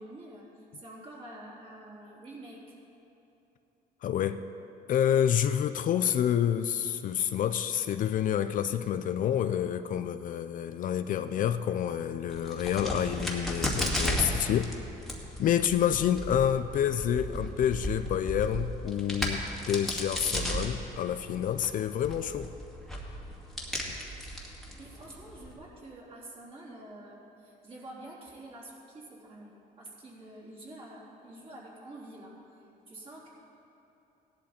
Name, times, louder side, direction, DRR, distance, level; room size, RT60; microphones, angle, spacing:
voice 1, 0.0-2.8 24.4-32.4 32.9-33.3, right 1 dB, 35° right, -5 dB, 3.6 m, -47 dB
voice 2, 4.0-4.4 4.9-14.7 15.4-22.5, left 9 dB, 50° left, 10 dB, 0.5 m, -28 dB
Crack, 12.3-25.5, equal, ahead, 2.1 m, -35 dB
16.5 x 11.5 x 4.4 m, 2.9 s
cardioid pair, 110°, 17 cm